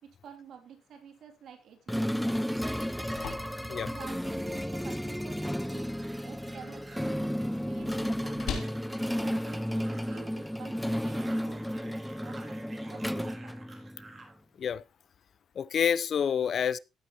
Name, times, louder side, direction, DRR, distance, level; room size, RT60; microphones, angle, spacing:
voice 1, 0.0-3.1 3.8-6.0 6.2-8.8 9.1-12.0 12.2-12.6 12.9-13.6, right 7 dB, 70° right, 3.2 m, -50 dB
sound 1, 1.9-14.2, equal, ahead, 0.5 m, -33 dB
sound 2, 2.7-10.6, left 7 dB, 80° left, 3.3 m, -45 dB
sound 3, 6.0-14.4, right 2 dB, 35° right, 4.2 m, -53 dB
voice 2, 15.6-16.8, left 8 dB, 55° left, 0.6 m, -28 dB
15.5 x 8.7 x 3.1 m
cardioid pair, 90°, 0 cm